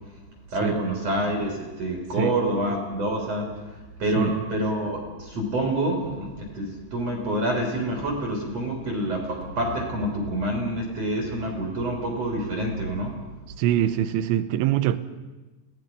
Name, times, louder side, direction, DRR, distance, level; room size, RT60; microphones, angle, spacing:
voice 1, 0.5-13.1, right 1 dB, 40° right, 3.8 m, -27 dB
voice 2, 13.6-15.0, right 12 dB, 85° right, 3.1 m, -23 dB
27.5 x 18.5 x 5.5 m
omnidirectional pair, 5.2 m